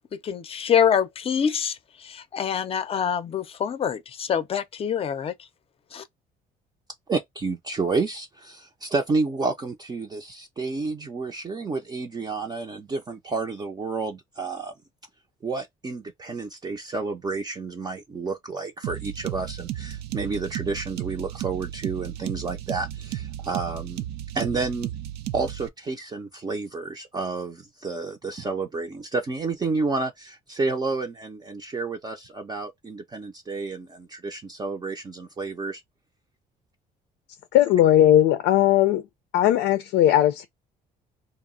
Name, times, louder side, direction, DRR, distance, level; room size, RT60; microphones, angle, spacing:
voice 1, 0.1-5.3 5.9-6.0, left 8 dB, 35° left, 0.5 m, -25 dB
voice 2, 7.1-14.7 15.4-24.0 24.3-24.9 25.3-35.8, right 3 dB, 25° right, 0.5 m, -30 dB
sound 1, 18.8-25.7, right 12 dB, 80° right, 0.4 m, -34 dB
voice 3, 37.5-39.0 39.3-40.5, left 12 dB, 90° left, 0.5 m, -18 dB
2.3 x 2.0 x 3.6 m
cardioid pair, 110°, 17 cm